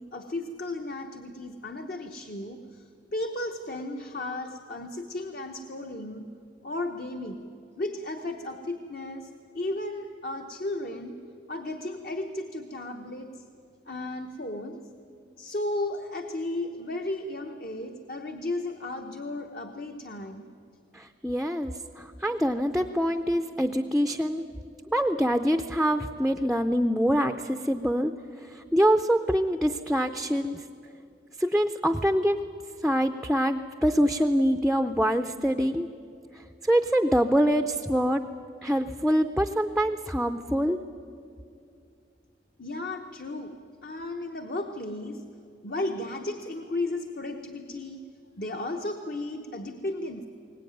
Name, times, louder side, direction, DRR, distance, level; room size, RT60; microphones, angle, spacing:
voice 1, 0.0-2.8 3.1-6.3 6.6-7.5 7.8-11.2 11.5-13.5 13.9-14.8 15.4-20.5 42.6-45.2 45.6-48.0 48.4-50.3, left 2 dB, 50° left, 4 dB, 1.0 m, -34 dB
voice 2, 20.9-24.5 24.9-28.1 28.5-30.6 31.4-32.4 32.8-35.9 36.6-38.2 38.6-40.8, equal, ahead, 7 dB, 0.5 m, -25 dB
22.5 x 18.5 x 9.3 m, 2.4 s
head